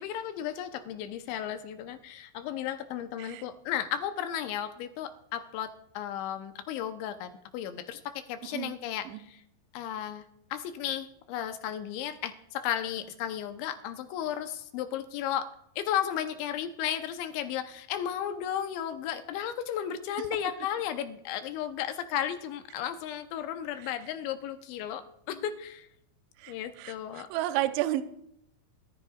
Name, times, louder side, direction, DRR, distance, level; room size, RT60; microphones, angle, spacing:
voice 1, 0.0-9.4 9.7-10.3 10.5-15.5 15.8-25.9 26.5-27.3, left 10 dB, 80° left, 8 dB, 2.9 m, -34 dB
voice 2, 26.4-28.0, right 15 dB, 85° right, 10 dB, 2.7 m, -32 dB
21.0 x 13.5 x 2.4 m, 0.74 s
omnidirectional pair, 5.7 m